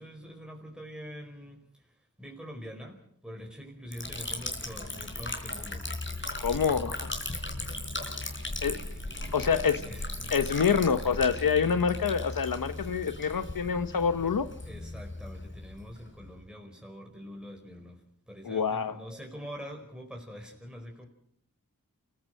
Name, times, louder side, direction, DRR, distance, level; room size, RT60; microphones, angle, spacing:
voice 1, 0.0-5.9 8.6-10.3 14.6-21.1, equal, ahead, 1 dB, 4.7 m, -45 dB
Liquid, 3.9-16.4, left 2 dB, 35° left, 4.5 m, -37 dB
voice 2, 6.4-7.1 8.6-8.8 9.3-9.8 10.3-14.5 18.5-18.9, left 6 dB, 85° left, 11 dB, 0.9 m, -26 dB
28.0 x 15.5 x 6.5 m, 0.68 s
wide cardioid pair, 50°, 33 cm